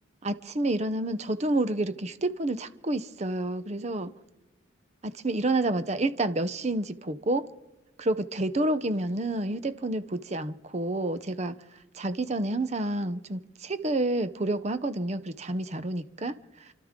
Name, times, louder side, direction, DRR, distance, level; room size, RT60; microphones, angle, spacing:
voice 1, 0.2-4.1 5.0-7.5 8.0-11.5 11.9-16.3, right 2 dB, 35° right, 0.7 m, -29 dB
29.0 x 13.0 x 3.7 m
head